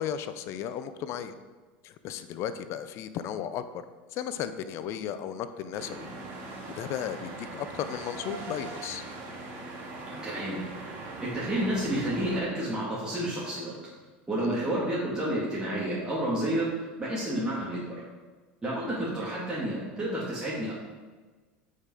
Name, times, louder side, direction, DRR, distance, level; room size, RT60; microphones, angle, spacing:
voice 1, 0.0-1.4 1.8-3.8 4.1-6.1 6.5-9.0 14.4-14.6, left 9 dB, 55° left, 12 dB, 0.6 m, -35 dB
sound 1, 5.7-12.4, right 2 dB, 45° right, 2.4 m, -41 dB
voice 2, 10.2-10.6 11.2-13.7 14.3-16.7 17.0-18.0 18.6-20.7, right 1 dB, 15° right, -8 dB, 2.7 m, -30 dB
8.8 x 5.6 x 4.9 m, 1.3 s
hypercardioid pair, 90°, 6 cm